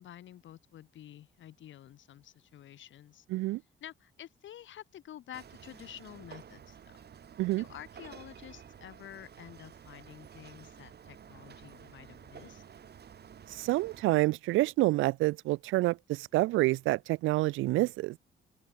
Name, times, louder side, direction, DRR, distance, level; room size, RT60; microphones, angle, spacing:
voice 1, 0.0-3.2 3.8-7.0 7.6-12.6, left 11 dB, 75° left, 4.7 m, -50 dB
voice 2, 3.3-3.6 7.4-7.6 13.5-18.2, right 19 dB, 85° right, 0.4 m, -28 dB
sound 1, 5.3-14.0, right 8 dB, 55° right, 5.6 m, -52 dB
open air
cardioid pair, 90°, 20 cm